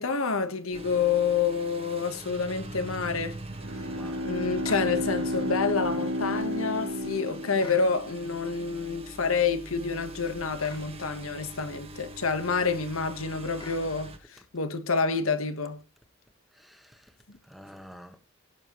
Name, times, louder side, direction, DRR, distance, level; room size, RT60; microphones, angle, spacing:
voice 1, 0.0-3.4 4.2-14.1 14.5-15.8, left 5 dB, 85° left, 1.4 m, -28 dB
sound 1, 0.7-14.2, right 1 dB, 30° right, 1.5 m, -43 dB
Bowed string instrument, 3.5-8.2, left 1 dB, 80° right, 1.6 m, -32 dB
voice 2, 3.9-4.4 16.5-18.2, equal, ahead, 1.4 m, -49 dB
sound 2, 4.6-4.9 7.6-7.9 10.6-10.9 13.6-13.9, left 3 dB, 25° left, 2.2 m, -44 dB
17.0 x 7.0 x 3.1 m
head